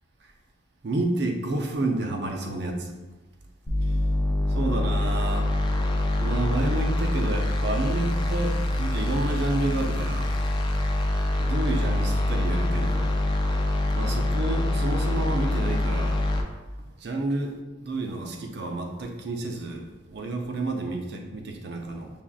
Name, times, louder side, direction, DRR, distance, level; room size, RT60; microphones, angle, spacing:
voice 1, 0.8-2.9 3.8-3.9 4.5-5.5 6.2-10.4 11.4-13.2 13.9-16.3 17.0-22.1, right 2 dB, 60° right, 2 dB, 0.5 m, -30 dB
sound 1, 3.7-16.4, left 1 dB, 25° left, 0.3 m, -25 dB
6.9 x 2.4 x 2.4 m, 1.2 s
head